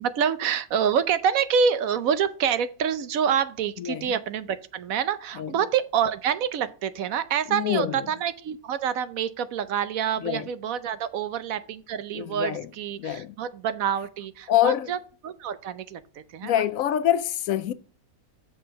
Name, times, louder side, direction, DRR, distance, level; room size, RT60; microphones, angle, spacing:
voice 1, 0.0-15.0 15.2-16.0 16.3-16.5, right 7 dB, 70° right, 1.0 m, -27 dB
voice 2, 3.8-4.1 5.3-5.6 7.5-8.0 10.2-10.5 12.1-12.7 13.0-13.4 14.5-14.9 16.4-17.7, left 11 dB, 70° left, 0.9 m, -25 dB
6.7 x 6.0 x 5.0 m
omnidirectional pair, 1.6 m